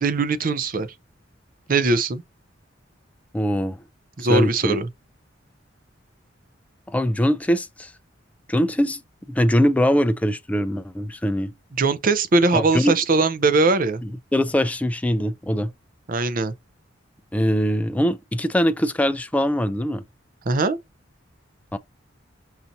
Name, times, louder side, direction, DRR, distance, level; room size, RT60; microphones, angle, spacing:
voice 1, 0.0-0.9 1.7-2.2 4.2-4.9 11.8-14.0 16.1-16.5 20.5-20.8, right 3 dB, 45° right, 0.5 m, -20 dB
voice 2, 3.3-3.8 4.2-4.8 6.9-7.9 8.5-9.0 9.3-11.5 12.5-13.0 14.0-15.7 17.3-20.0 21.7-21.8, equal, 5° left, 0.3 m, -22 dB
5.6 x 2.6 x 2.6 m
head